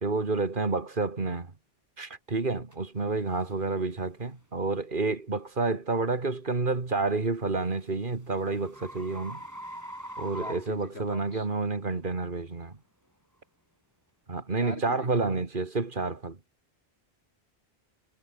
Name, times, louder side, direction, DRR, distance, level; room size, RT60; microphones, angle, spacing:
voice 1, 0.0-1.5 2.0-9.4 10.2-12.8 14.3-16.4, right 3 dB, 50° right, 2.3 m, -29 dB
sound 1, 2.7-2.8 3.4-3.6 4.2-4.4 7.0-11.5, equal, 15° right, 7.2 m, -43 dB
voice 2, 10.4-11.5 14.6-15.3, left 1 dB, 75° left, 8.4 m, -43 dB
omnidirectional pair, 1.1 m